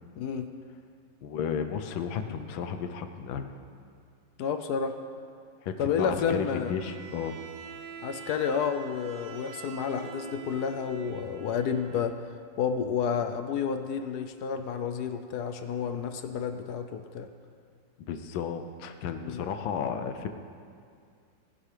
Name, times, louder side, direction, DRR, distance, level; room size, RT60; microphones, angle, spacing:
voice 1, 0.2-0.5 4.4-5.0 5.8-6.7 8.0-12.1 12.6-17.3 19.2-19.5, left 6 dB, 70° left, 8 dB, 1.0 m, -30 dB
voice 2, 1.2-3.4 5.6-7.4 18.1-20.3, left 7 dB, 90° left, 7 dB, 1.5 m, -33 dB
Bowed string instrument, 6.6-12.2, right 8 dB, 80° right, 1.4 m, -46 dB
18.5 x 11.0 x 3.3 m, 2.3 s
omnidirectional pair, 2.1 m